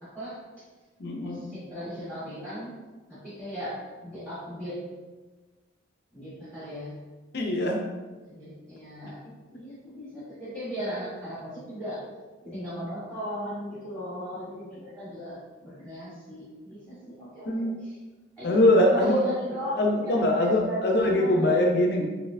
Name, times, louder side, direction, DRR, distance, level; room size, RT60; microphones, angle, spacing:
voice 1, 0.0-0.4 1.2-2.7 3.1-4.8 6.1-6.9 8.3-9.2 9.5-12.0 12.4-18.0 18.4-21.6, equal, 15° right, -13 dB, 1.3 m, -37 dB
voice 2, 1.0-1.4 7.3-7.8 17.5-17.8 18.4-19.2 19.8-22.0, left 1 dB, 50° left, 1 dB, 0.6 m, -22 dB
4.0 x 2.9 x 2.6 m, 1.2 s
head